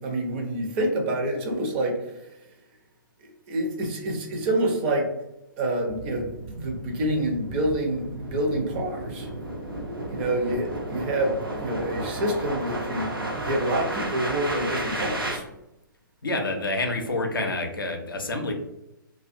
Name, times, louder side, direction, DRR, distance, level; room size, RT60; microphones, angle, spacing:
voice 1, 0.0-2.4 3.2-5.1 5.6-9.3 10.1-15.4, right 1 dB, 30° right, 1 dB, 0.5 m, -27 dB
Sweep (Ducking fast), 5.9-15.4, right 1 dB, 85° right, 0.6 m, -33 dB
voice 2, 16.2-18.5, left 2 dB, 75° left, 3 dB, 0.5 m, -28 dB
2.2 x 2.1 x 2.6 m, 0.89 s
figure-of-eight pair, 120°, 12 cm